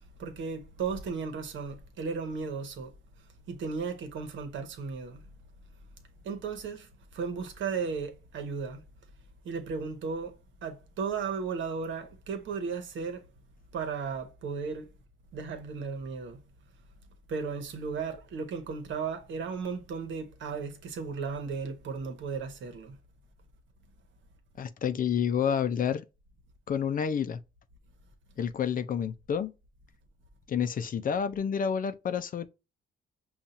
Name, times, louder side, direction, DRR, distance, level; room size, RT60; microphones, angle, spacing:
voice 1, 0.2-2.9 3.5-5.2 6.2-8.8 9.4-13.2 13.7-14.9 15.3-16.4 17.3-23.0, right 5 dB, 70° right, 1.1 m, -35 dB
voice 2, 24.6-26.0 26.7-27.4 28.4-29.5 30.5-32.5, left 7 dB, 45° left, 0.5 m, -29 dB
5.5 x 2.4 x 2.6 m
cardioid pair, 90°, 20 cm